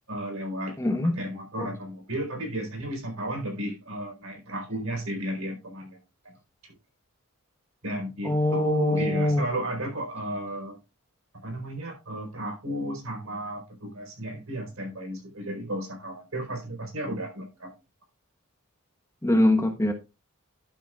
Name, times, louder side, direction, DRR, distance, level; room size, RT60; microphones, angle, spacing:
voice 1, 0.1-0.8 1.0-6.0 6.2-6.3 6.6-6.7 7.8-10.8 11.4-17.7, right 1 dB, 70° right, 4.3 m, -33 dB
voice 2, 0.8-1.2 1.6-1.7 8.2-9.5 19.2-19.9, left 1 dB, 15° left, 1.1 m, -23 dB
11.5 x 10.0 x 2.4 m
head